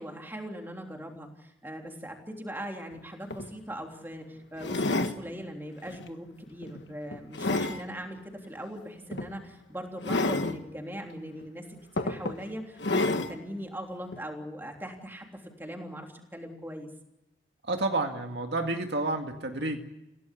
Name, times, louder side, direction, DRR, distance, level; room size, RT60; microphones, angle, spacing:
voice 1, 0.0-11.7 11.9-16.9, equal, 10° right, 2 dB, 3.4 m, -40 dB
sound 1, 2.9-3.0 3.3-3.5 4.6-5.2 5.8-6.1 6.6-7.8 9.1-9.3 10.0-10.6 11.4-11.5 12.0-12.4 12.8-13.4 14.1-14.2, left 2 dB, 70° left, 1.5 m, -29 dB
voice 2, 17.6-19.8, right 2 dB, 65° right, 4 dB, 2.1 m, -30 dB
27.5 x 17.0 x 8.4 m, 0.94 s
head